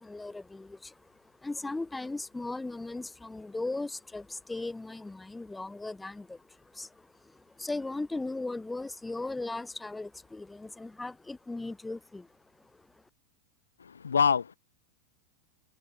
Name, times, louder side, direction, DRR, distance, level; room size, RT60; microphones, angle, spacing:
voice 1, 0.0-12.3, left 2 dB, 10° left, 2.4 m, -38 dB
voice 2, 13.8-14.6, left 6 dB, 70° left, 0.5 m, -26 dB
figure-of-eight pair, 90°, 0 cm